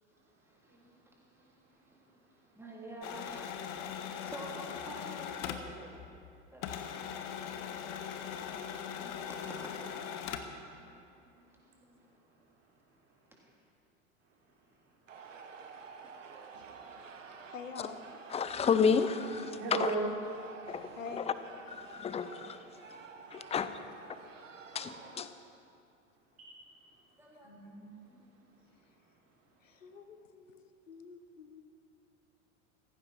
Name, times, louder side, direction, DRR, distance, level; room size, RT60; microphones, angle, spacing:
voice 1, 0.4-5.9 6.5-6.8 8.9-9.0 9.3-9.9 12.0-12.2 13.3-13.4 16.0-16.1 24.8-25.3 27.2-27.5, right 1 dB, 5° right, -3 dB, 3.4 m, -49 dB
sound 1, 3.0-6.3 6.6-10.6, left 8 dB, 45° left, 1.2 m, -40 dB
sound 2, 15.1-25.2, right 5 dB, 75° right, 1.2 m, -50 dB
voice 2, 17.5-18.0 21.0-21.3 29.6-31.6, left 6 dB, 75° left, 9 dB, 1.0 m, -46 dB
voice 3, 18.3-19.9 20.7-21.3 21.7-22.6 23.3-23.7 24.7-25.3, left 6 dB, 15° left, 12 dB, 0.7 m, -31 dB
voice 4, 19.5-20.0 26.4-26.6 27.4-28.2, right 4 dB, 40° right, -3 dB, 4.0 m, -38 dB
16.5 x 15.0 x 4.4 m, 2.6 s
figure-of-eight pair, 80°, 38 cm